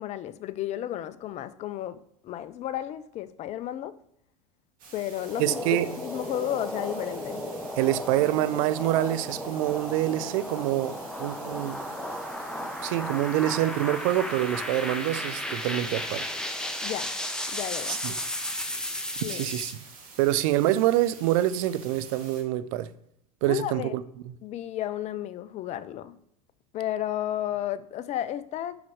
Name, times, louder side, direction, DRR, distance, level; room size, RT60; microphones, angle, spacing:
voice 1, 0.0-3.9 4.9-7.4 16.8-17.1 17.5-18.0 19.2-19.5 23.5-24.0 24.4-26.2 26.7-28.8, left 12 dB, 35° left, 0.5 m, -33 dB
sound 1, 4.8-22.4, right 4 dB, 45° right, 2.1 m, -49 dB
sound 2, 5.2-19.7, left 1 dB, 5° left, 0.8 m, -34 dB
voice 2, 5.4-5.9 7.8-11.8 12.8-16.2 17.9-18.1 19.3-19.7 20.2-22.9 23.4-24.3, right 14 dB, 60° right, 0.5 m, -26 dB
5.3 x 4.7 x 4.8 m
hypercardioid pair, 90°, 19 cm